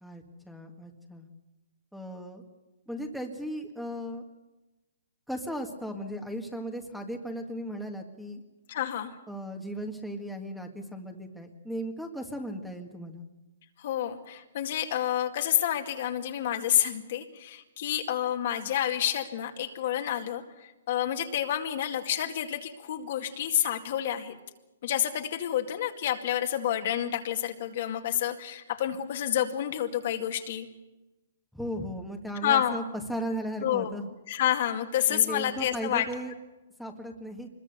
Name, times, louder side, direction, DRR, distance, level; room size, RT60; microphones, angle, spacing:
voice 1, 0.0-1.3 1.9-2.4 2.9-4.2 5.3-8.4 9.3-13.2 31.5-32.8 33.1-34.1 35.1-36.3 36.8-37.5, equal, ahead, 4 dB, 1.9 m, -36 dB
voice 2, 8.7-9.1 13.8-20.4 20.9-24.4 24.8-30.7 32.4-32.8 33.6-33.9 34.3-36.1, left 11 dB, 50° left, 4 dB, 2.2 m, -29 dB
24.5 x 21.5 x 6.8 m, 1.1 s
hypercardioid pair, 155°, 0 cm